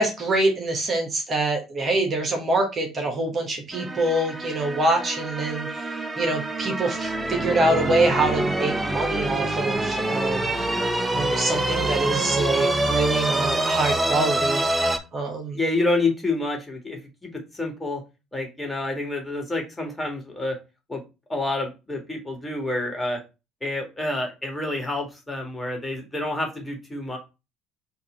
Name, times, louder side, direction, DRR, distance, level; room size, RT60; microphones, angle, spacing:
voice 1, 0.0-10.6 11.1-15.6, right 2 dB, 40° right, 3 dB, 1.4 m, -25 dB
sound 1, 3.7-15.0, right 1 dB, 20° right, 0.6 m, -26 dB
voice 2, 15.5-18.0 18.3-20.6 20.9-21.0 21.3-23.2 23.6-27.2, left 2 dB, 10° left, 1 dB, 1.8 m, -28 dB
4.5 x 2.7 x 4.2 m, 0.28 s
hypercardioid pair, 55°, 0 cm